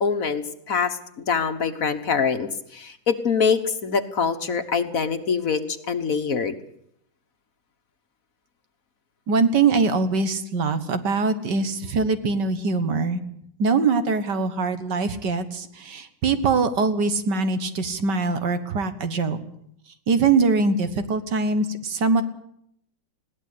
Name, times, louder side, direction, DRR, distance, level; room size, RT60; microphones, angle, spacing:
voice 1, 0.0-6.6, left 6 dB, 50° left, 8 dB, 1.5 m, -24 dB
voice 2, 9.3-13.2 13.6-19.4 20.1-22.2, right 4 dB, 70° right, 10 dB, 2.0 m, -22 dB
21.0 x 17.0 x 8.3 m, 0.71 s
omnidirectional pair, 2.0 m